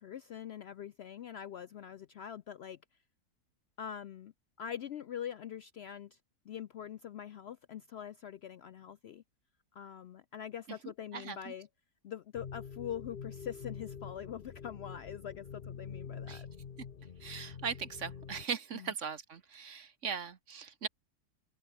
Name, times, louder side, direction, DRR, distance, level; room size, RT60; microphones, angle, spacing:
voice 1, 0.0-2.8 3.8-4.3 4.6-6.2 6.5-9.2 9.7-11.7 12.0-16.5 18.7-18.9, left 9 dB, 75° left, 0.6 m, -43 dB
voice 2, 11.1-11.5 16.3-16.4 17.2-20.9, right 6 dB, 55° right, 1.4 m, -39 dB
sound 1, 12.3-18.4, left 6 dB, 40° left, 1.0 m, -46 dB
omnidirectional pair, 1.7 m